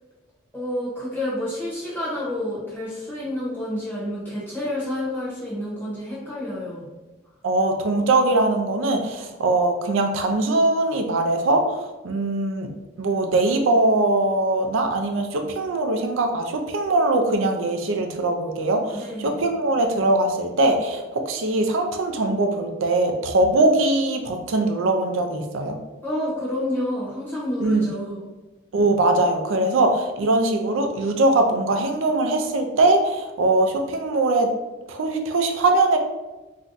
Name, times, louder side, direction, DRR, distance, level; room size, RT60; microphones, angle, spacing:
voice 1, 0.5-6.9 18.9-19.4 26.0-28.2, left 1 dB, 10° left, -8 dB, 0.8 m, -29 dB
voice 2, 7.4-12.7 13.0-25.8 27.6-27.9 28.7-34.5 34.9-36.0, right 2 dB, 80° right, 5 dB, 0.4 m, -21 dB
2.6 x 2.2 x 3.8 m, 1.1 s
head